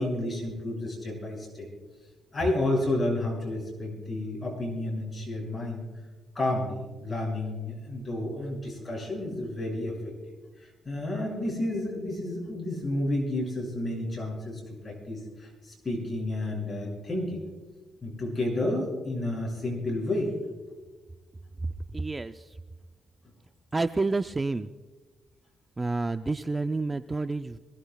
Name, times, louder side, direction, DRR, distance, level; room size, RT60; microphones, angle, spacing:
voice 1, 0.0-1.7 2.3-5.8 6.3-9.9 10.3-17.4 18.0-20.3, left 1 dB, 25° left, -2 dB, 6.2 m, -31 dB
voice 2, 21.9-22.6 23.7-24.7 25.8-27.6, right 3 dB, 20° right, 9 dB, 0.4 m, -29 dB
25.5 x 17.5 x 2.3 m, 1.3 s
cardioid pair, 120°, 0 cm